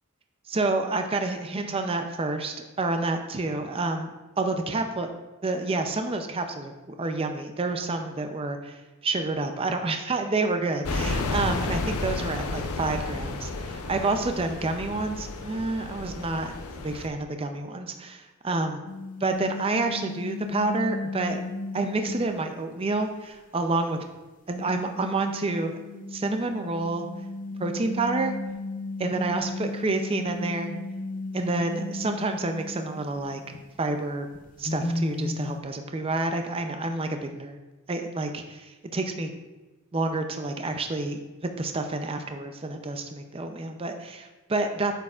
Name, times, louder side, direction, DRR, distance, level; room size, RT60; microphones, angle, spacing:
voice 1, 0.5-5.1 5.4-16.5 16.8-18.8 19.2-21.4 21.7-24.0 24.5-25.8 26.1-27.1 27.6-28.4 29.0-30.7 31.3-34.3 34.6-37.6 37.9-39.3 39.9-41.2 41.6-44.9, right 3 dB, 25° right, 6 dB, 0.4 m, -29 dB
sound 1, 10.8-17.1, left 3 dB, 85° left, 0.6 m, -32 dB
sound 2, 18.9-22.7 23.0-23.2 24.5-33.6 33.9-34.0 34.3-35.6, left 2 dB, 35° left, 0.6 m, -35 dB
8.5 x 6.7 x 2.4 m, 1.2 s
head